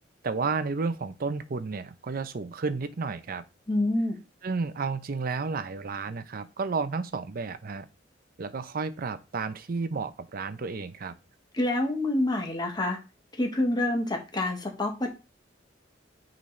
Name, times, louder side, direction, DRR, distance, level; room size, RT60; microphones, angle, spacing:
voice 1, 0.2-3.4 4.4-7.9 8.4-11.1, right 4 dB, 50° right, 0.6 m, -32 dB
voice 2, 3.7-4.2 11.5-13.0 13.4-15.1, left 1 dB, 20° left, 1.1 m, -27 dB
8.4 x 3.9 x 3.2 m
head